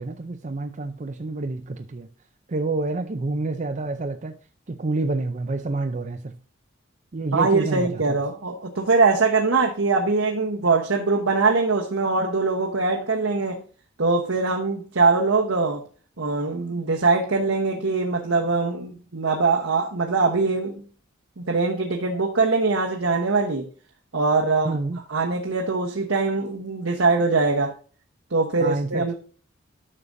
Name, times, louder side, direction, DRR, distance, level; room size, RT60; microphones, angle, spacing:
voice 1, 0.0-2.1 2.5-4.4 4.7-6.3 7.1-8.2 24.6-25.0 28.6-29.1, right 3 dB, 40° right, 0.5 m, -28 dB
voice 2, 7.3-13.6 14.0-15.8 16.2-20.8 21.4-23.7 24.1-24.8 25.1-27.7 28.3-29.1, right 3 dB, 85° right, 1.1 m, -22 dB
11.0 x 6.6 x 2.7 m
head